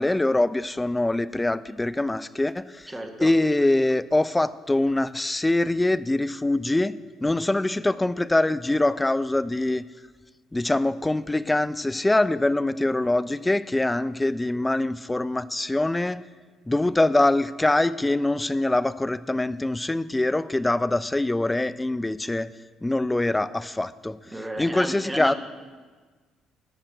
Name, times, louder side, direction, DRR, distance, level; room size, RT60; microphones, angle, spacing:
voice 1, 0.0-2.9 3.2-9.8 10.5-16.2 16.7-22.5 22.8-24.2 24.6-25.3, left 2 dB, 15° left, 16 dB, 0.4 m, -24 dB
voice 2, 2.9-3.3 24.3-25.3, right 1 dB, 15° right, 4 dB, 1.6 m, -33 dB
13.5 x 5.8 x 6.3 m, 1.4 s
hypercardioid pair, 60°, 0 cm